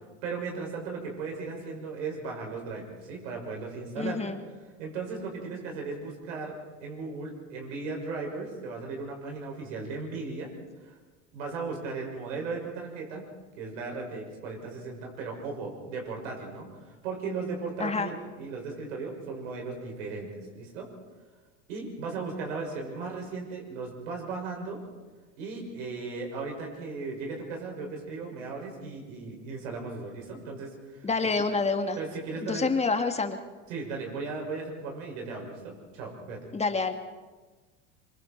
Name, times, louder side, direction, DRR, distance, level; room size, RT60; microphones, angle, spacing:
voice 1, 0.2-4.2 4.8-6.6 6.8-10.5 10.8-10.9 11.3-13.2 13.6-16.7 17.0-20.9 21.7-24.8 25.4-31.1 32.0-32.7 33.7-36.4, right 4 dB, 70° right, 0 dB, 6.4 m, -36 dB
voice 2, 4.0-4.4 17.8-18.1 31.0-32.0 32.5-33.4 36.5-36.9, left 4 dB, 15° left, 6 dB, 1.8 m, -27 dB
25.0 x 24.0 x 4.6 m, 1.3 s
hypercardioid pair, 85°, 39 cm